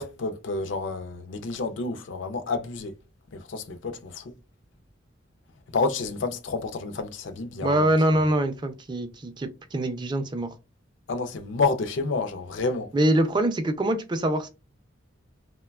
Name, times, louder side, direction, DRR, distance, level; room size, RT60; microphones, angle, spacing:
voice 1, 0.0-2.9 3.5-4.2 5.7-7.9 11.1-12.9, left 3 dB, 75° left, 0.4 m, -29 dB
voice 2, 7.6-10.5 12.9-14.5, right 1 dB, 25° right, 0.4 m, -24 dB
3.0 x 2.1 x 2.2 m
head